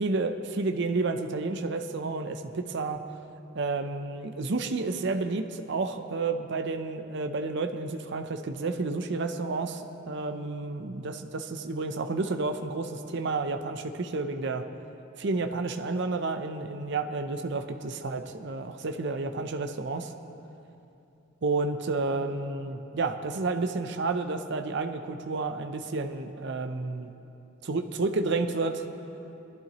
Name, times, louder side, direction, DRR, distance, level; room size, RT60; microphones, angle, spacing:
voice 1, 0.0-3.0 3.5-14.7 15.2-20.1 21.4-27.1 27.6-28.8, right 3 dB, 65° right, 7 dB, 0.6 m, -30 dB
21.0 x 11.5 x 3.0 m, 2.8 s
head